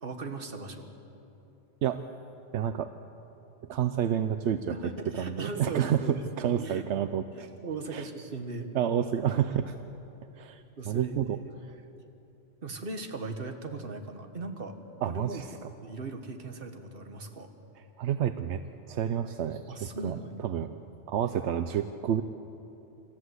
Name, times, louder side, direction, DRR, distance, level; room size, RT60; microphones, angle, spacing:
voice 1, 0.0-0.9 4.7-6.2 6.6-6.8 7.3-8.7 10.8-11.4 12.6-14.8 15.0-15.4 15.8-17.5 19.7-20.5, right 3 dB, 55° right, 6 dB, 1.6 m, -38 dB
voice 2, 2.5-2.9 3.7-4.7 5.2-7.5 7.9-8.1 8.7-9.7 10.4-11.4 15.0-15.5 18.0-18.6 18.9-20.8 21.1-22.2, right 9 dB, 80° right, 10 dB, 0.9 m, -29 dB
27.0 x 14.0 x 8.0 m, 2.9 s
omnidirectional pair, 1.1 m